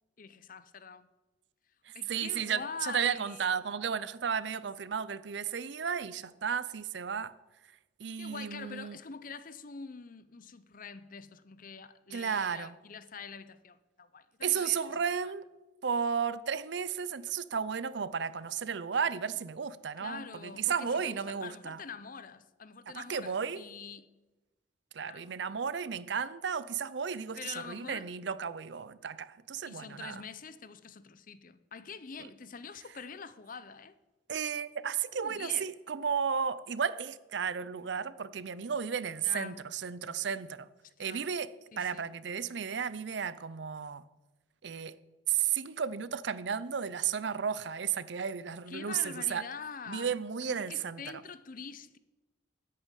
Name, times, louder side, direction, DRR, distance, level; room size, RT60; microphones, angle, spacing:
voice 1, 0.2-1.1 1.9-3.4 8.2-14.8 15.2-15.3 20.0-24.1 25.0-25.3 27.4-28.1 29.7-33.9 35.1-35.7 39.2-39.6 41.0-41.2 41.7-42.1 48.7-52.0, left 5 dB, 45° left, 0.7 m, -45 dB
voice 2, 1.9-7.3 8.0-9.0 12.1-12.7 14.4-15.4 15.8-21.8 22.9-23.6 24.9-30.2 34.3-40.7 41.0-41.5 41.8-44.0 44.6-45.0 45.3-49.5 49.9-51.0, right 7 dB, 65° right, 0.5 m, -33 dB
10.5 x 8.7 x 8.3 m
head